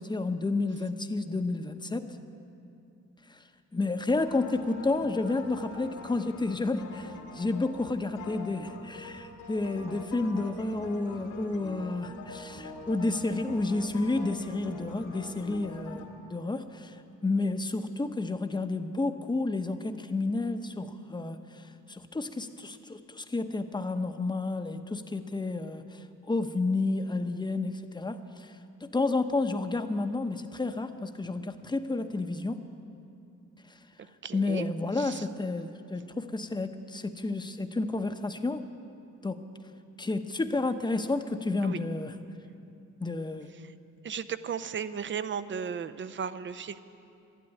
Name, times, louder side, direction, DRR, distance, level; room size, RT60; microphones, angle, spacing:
voice 1, 0.0-2.1 3.3-3.4 3.7-16.9 17.2-28.5 28.8-32.6 34.3-38.7 39.2-39.4 40.0-42.1 43.0-43.5, left 3 dB, 15° left, 8 dB, 0.9 m, -31 dB
sound 1, 4.1-16.0, left 2 dB, 80° left, 2.6 m, -44 dB
voice 2, 34.0-34.7 34.9-35.3 41.6-41.8 43.5-43.7 44.0-46.8, right 7 dB, 40° right, 13 dB, 0.7 m, -36 dB
12.0 x 11.5 x 9.5 m, 2.6 s
cardioid pair, 90°, 30 cm